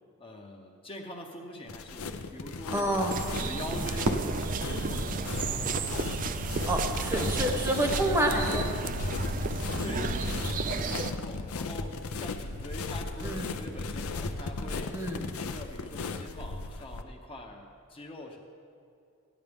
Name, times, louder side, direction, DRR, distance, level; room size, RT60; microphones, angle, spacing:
voice 1, 0.2-3.1 3.4-5.8 9.5-18.4, left 1 dB, 25° left, 1 dB, 0.8 m, -44 dB
sound 1, 1.7-17.0, left 3 dB, 70° left, 0.6 m, -36 dB
voice 2, 2.7-3.1 6.7-8.7 13.2-13.4 14.9-15.3, right 1 dB, 10° right, 1 dB, 0.9 m, -28 dB
sound 2, 3.1-11.1, right 4 dB, 35° right, 0.4 m, -33 dB
Fireworks, 4.0-6.2, right 1 dB, 75° right, 0.9 m, -35 dB
14.5 x 11.0 x 3.5 m, 2.5 s
head